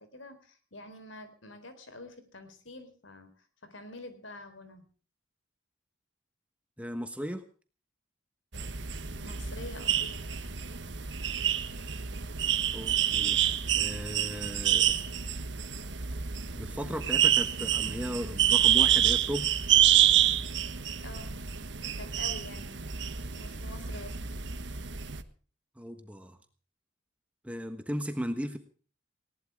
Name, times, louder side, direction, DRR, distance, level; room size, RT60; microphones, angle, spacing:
voice 1, 0.0-3.3 3.7-4.8 9.2-10.2 21.0-21.4 21.8-22.8 23.3-24.1, left 2 dB, 75° left, 10 dB, 4.1 m, -46 dB
voice 2, 6.8-7.4 12.7-13.4 13.7-15.0 16.5-19.5 25.8-26.4 27.4-28.6, equal, 5° right, 7 dB, 1.2 m, -36 dB
sound 1, 8.5-25.2, right 10 dB, 65° right, 1.4 m, -28 dB
19.5 x 18.0 x 3.6 m, 0.40 s
head